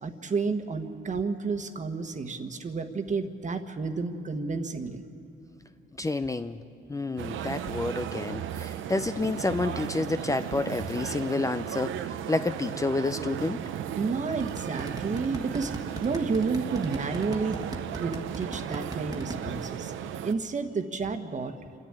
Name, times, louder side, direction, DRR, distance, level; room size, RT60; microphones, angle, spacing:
voice 1, 0.0-5.0 14.0-15.7 16.0-17.6 18.0-19.9 20.2-21.5, right 4 dB, 40° right, 7 dB, 1.4 m, -31 dB
voice 2, 6.0-6.6 6.9-13.6, left 2 dB, 15° left, 10 dB, 0.6 m, -29 dB
sound 1, 7.2-20.3, right 10 dB, 80° right, 0.8 m, -35 dB
sound 2, 14.4-19.4, right 1 dB, 20° right, 1.6 m, -38 dB
28.0 x 10.5 x 8.9 m, 2.6 s
cardioid pair, 90°, 20 cm